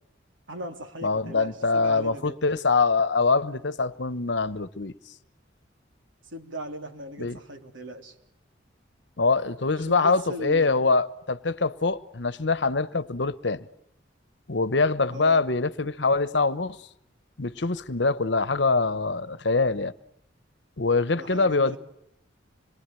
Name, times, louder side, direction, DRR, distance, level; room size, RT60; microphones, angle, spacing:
voice 1, 0.5-2.4 6.2-8.2 9.8-10.9 15.1-15.5 21.1-21.8, equal, 90° right, 3.5 m, -38 dB
voice 2, 1.0-4.9 7.2-7.4 9.2-13.7 14.5-16.8 17.4-19.9 20.8-21.8, left 3 dB, 65° left, 1.1 m, -24 dB
27.0 x 23.0 x 9.1 m
head